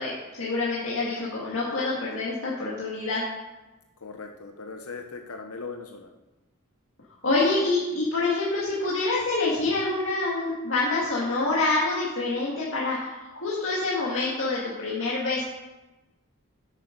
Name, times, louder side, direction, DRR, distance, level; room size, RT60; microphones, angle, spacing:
voice 1, 0.0-3.2 7.2-15.4, left 3 dB, 60° left, -6 dB, 2.1 m, -26 dB
voice 2, 4.0-6.1, left 4 dB, 80° left, 4 dB, 0.8 m, -39 dB
10.5 x 8.3 x 5.3 m, 1.1 s
head